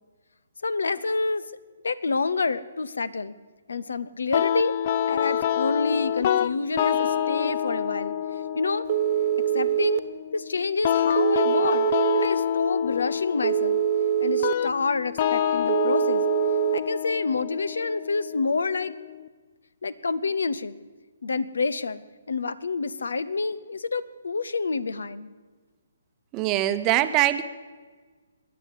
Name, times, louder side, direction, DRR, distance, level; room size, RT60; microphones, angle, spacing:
voice 1, 0.6-1.5 1.8-3.3 3.7-4.7 5.1-8.1 8.5-8.9 9.5-10.0 10.3-13.8 14.2-16.2 16.7-18.9 19.8-20.8 21.2-22.0 22.3-25.3, left 4 dB, 85° left, 19 dB, 0.8 m, -28 dB
sound 1, 4.3-19.3, left 9 dB, 40° left, 0.5 m, -27 dB
Telephone, 8.9-10.0 11.2-12.3 13.4-14.5 15.7-16.8, right 12 dB, 45° right, 1.2 m, -24 dB
voice 2, 26.3-27.4, right 14 dB, 25° right, 11 dB, 0.8 m, -22 dB
21.5 x 7.7 x 8.3 m, 1.4 s
hypercardioid pair, 150°, 0 cm